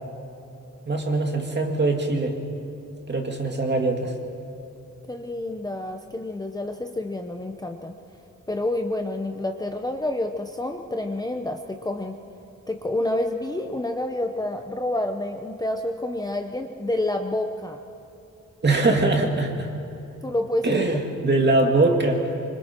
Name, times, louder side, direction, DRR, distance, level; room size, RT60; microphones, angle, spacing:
voice 1, 0.9-2.3 3.1-4.1 18.6-19.7 20.6-22.3, right 2 dB, 35° right, 2 dB, 2.4 m, -22 dB
voice 2, 5.1-7.9 8.5-12.1 12.7-17.8 20.2-20.8, left 1 dB, 10° left, 4 dB, 0.8 m, -28 dB
26.0 x 25.5 x 4.5 m, 2.8 s
wide cardioid pair, 165°, 31 cm